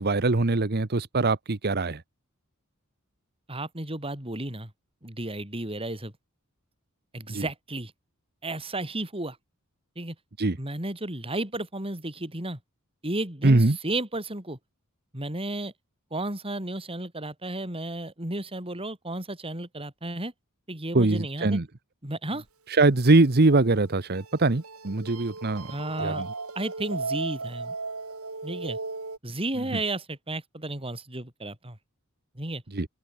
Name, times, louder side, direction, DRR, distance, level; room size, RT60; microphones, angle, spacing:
voice 1, 0.0-2.0 7.3-7.4 10.4-10.6 13.4-13.8 20.9-21.6 22.7-25.7 26.0-26.3 32.7-32.9, right 2 dB, 45° right, 1.1 m, -22 dB
voice 2, 3.5-4.7 5.0-6.1 7.1-7.9 8.4-9.4 9.9-10.1 10.6-12.6 13.0-14.6 15.1-15.7 16.1-20.3 20.7-21.6 22.0-22.4 25.7-26.3 26.5-27.7 28.4-28.8 29.2-31.8 32.3-32.6, right 2 dB, 25° right, 4.8 m, -33 dB
sound 1, 22.9-29.2, right 3 dB, 80° right, 4.1 m, -36 dB
open air
head